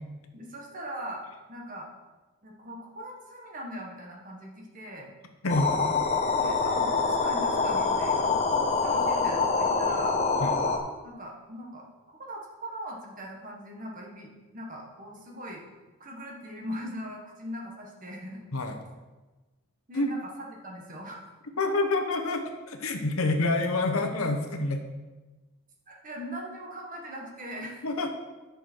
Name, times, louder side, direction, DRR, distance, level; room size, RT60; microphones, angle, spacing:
voice 1, 0.3-1.2 1.5-1.9 2.4-5.1 6.3-10.2 11.0-11.9 12.2-15.6 16.0-18.4 19.9-21.3 25.9-27.8, equal, 35° right, -1 dB, 1.6 m, -40 dB
sound 1, 5.5-10.8, left 4 dB, 30° left, 0.9 m, -25 dB
voice 2, 21.6-24.8 27.8-28.1, left 2 dB, 75° left, 4 dB, 1.2 m, -27 dB
10.5 x 6.6 x 4.6 m, 1.2 s
head